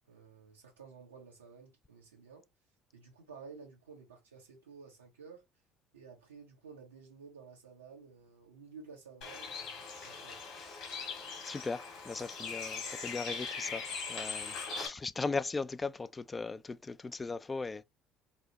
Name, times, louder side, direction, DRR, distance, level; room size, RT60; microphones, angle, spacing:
voice 1, 0.1-2.5 2.9-5.4 5.9-10.4 14.5-14.9, right 5 dB, 90° right, 1.3 m, -53 dB
Bird, 9.2-14.9, left 5 dB, 65° left, 1.8 m, -41 dB
voice 2, 11.5-13.8 14.1-17.8, left 4 dB, 25° left, 0.4 m, -38 dB
4.6 x 2.1 x 2.8 m
hypercardioid pair, 60°, 0 cm